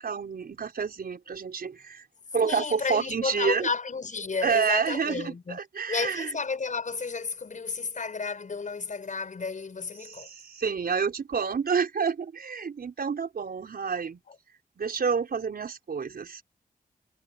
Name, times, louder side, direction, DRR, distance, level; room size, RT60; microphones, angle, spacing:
voice 1, 0.0-2.0 2.3-3.7 4.4-6.3 10.0-14.2 14.8-16.4, right 6 dB, 75° right, 5.4 m, -29 dB
voice 2, 2.4-5.6 5.9-10.3 14.3-14.4, left 5 dB, 55° left, 6.4 m, -32 dB
wide cardioid pair, 145°, 16 cm